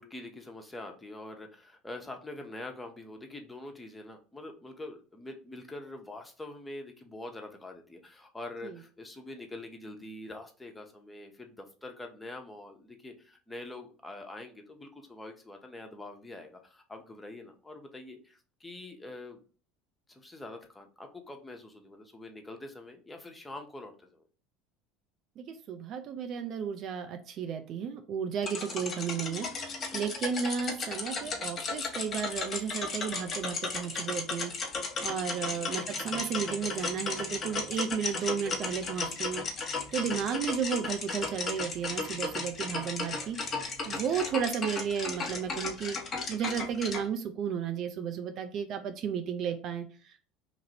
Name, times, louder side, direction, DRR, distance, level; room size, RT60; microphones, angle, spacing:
voice 1, 0.0-19.4 20.1-24.2 35.4-35.7, left 2 dB, 10° left, 3 dB, 0.8 m, -45 dB
voice 2, 25.4-29.5 29.9-34.5 35.0-39.4 39.9-43.4 43.8-46.0 46.3-50.2, right 7 dB, 50° right, 7 dB, 0.4 m, -33 dB
sound 1, 28.4-47.0, left 4 dB, 35° left, 1.1 m, -35 dB
3.0 x 2.5 x 4.2 m, 0.39 s
hypercardioid pair, 70°, 0 cm